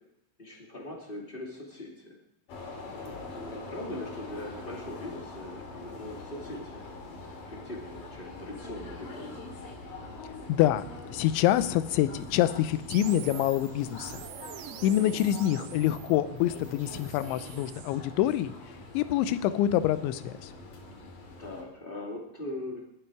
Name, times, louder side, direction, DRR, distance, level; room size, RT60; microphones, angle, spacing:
voice 1, 0.4-2.2 2.9-6.8 7.4-9.5 14.8-15.2 21.4-22.8, left 1 dB, 25° left, -2 dB, 1.1 m, -41 dB
sound 1, 2.5-21.6, left 3 dB, 50° left, 3.8 m, -44 dB
voice 2, 10.5-14.2 14.8-18.5 18.9-20.5, left 12 dB, 80° left, 13 dB, 2.9 m, -26 dB
sound 2, 12.9-18.0, right 12 dB, 80° right, 3.1 m, -45 dB
21.5 x 9.2 x 4.7 m, 0.81 s
omnidirectional pair, 5.7 m